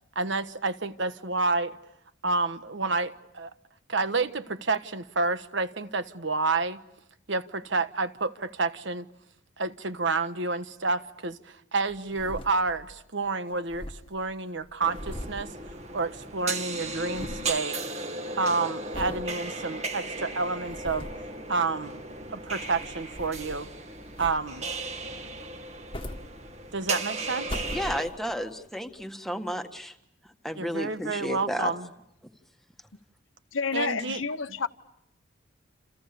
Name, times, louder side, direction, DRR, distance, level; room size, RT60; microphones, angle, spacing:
voice 1, 0.1-1.8 2.2-3.5 3.9-6.8 7.3-9.1 9.6-15.5 15.9-17.8 18.4-21.1 21.5-22.0 22.3-23.7 24.2-24.7 26.7-27.6 30.5-31.9 33.7-34.2, right 3 dB, 65° right, 1.3 m, -29 dB
sound 1, 11.9-13.0 13.3-13.4 13.5-16.3 16.6-17.6 18.0-18.4 18.9-19.3 19.8-19.9 20.5-21.3 22.3-23.8 24.2-24.7 25.6-26.8 27.2-28.4 29.0-29.1, left 1 dB, 25° left, 1.5 m, -41 dB
sound 2, 14.8-28.1, right 2 dB, 35° right, 1.9 m, -36 dB
voice 2, 27.7-29.9 30.4-31.7, equal, ahead, 1.7 m, -32 dB
voice 3, 33.5-34.7, left 5 dB, 80° left, 1.1 m, -29 dB
29.0 x 28.5 x 7.0 m
head